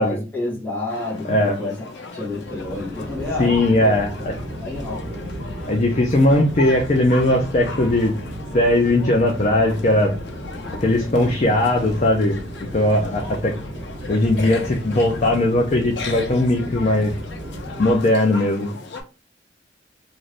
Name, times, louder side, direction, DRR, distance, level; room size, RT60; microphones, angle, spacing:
voice 1, 0.0-1.8 2.1-4.0 4.6-5.2, left 2 dB, 10° left, 1.0 m, -29 dB
sound 1, 0.9-19.0, left 4 dB, 80° left, 0.7 m, -37 dB
sound 2, 2.2-18.0, equal, 75° right, 1.0 m, -34 dB
voice 2, 3.4-4.3 5.7-8.1 8.5-10.1 10.8-12.4 12.7-13.5 14.1-17.1 17.8-18.7, left 1 dB, 40° left, 0.5 m, -19 dB
2.6 x 2.6 x 3.2 m
head